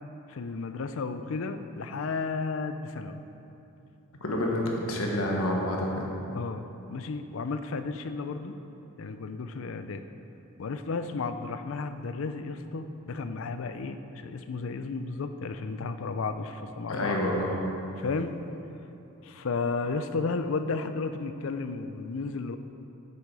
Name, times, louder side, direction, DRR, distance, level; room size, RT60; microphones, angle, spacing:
voice 1, 0.3-3.2 6.3-8.5 9.0-10.0 10.6-17.3 18.0-18.4 19.2-22.6, left 4 dB, 70° left, 9 dB, 0.5 m, -33 dB
voice 2, 4.2-6.1 16.9-17.5, left 1 dB, 90° left, -1 dB, 1.4 m, -28 dB
8.4 x 6.9 x 4.8 m, 2.9 s
head